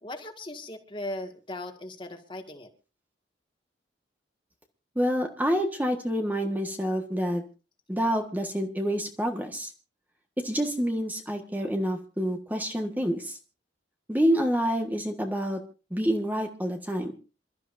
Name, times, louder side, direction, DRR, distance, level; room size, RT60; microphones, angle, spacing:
voice 1, 0.0-2.7, left 1 dB, 25° left, 5 dB, 1.9 m, -38 dB
voice 2, 4.9-7.4 7.9-9.7 10.4-13.4 14.1-15.6 15.9-17.1, equal, 10° right, 3 dB, 1.4 m, -27 dB
27.5 x 13.0 x 2.6 m, 0.33 s
head